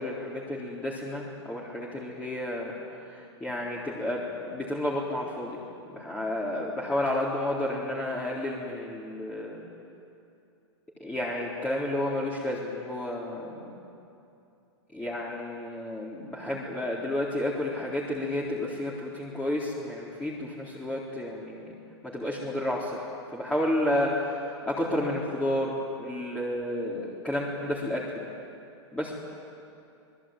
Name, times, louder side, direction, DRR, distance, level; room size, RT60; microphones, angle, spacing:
voice 1, 0.0-5.6 5.9-9.6 11.0-13.8 14.9-21.7 22.0-28.3 28.9-29.1, left 1 dB, 10° left, -5 dB, 4.0 m, -31 dB
27.5 x 20.5 x 9.1 m, 2.7 s
hypercardioid pair, 120°, 15 cm